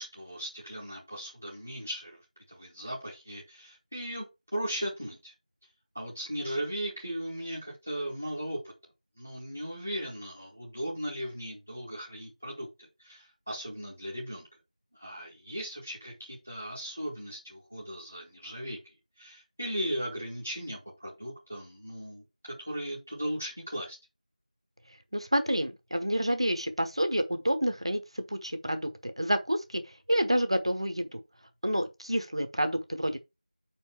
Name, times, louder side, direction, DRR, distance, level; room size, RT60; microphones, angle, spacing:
voice 1, 0.0-2.2 2.5-4.3 4.5-5.3 5.9-8.6 9.2-14.5 15.0-24.0, equal, 15° right, 0.8 m, -37 dB
voice 2, 25.1-31.2 31.6-33.2, equal, 40° right, 0.9 m, -29 dB
5.2 x 4.5 x 5.8 m
figure-of-eight pair, 180°, 4 cm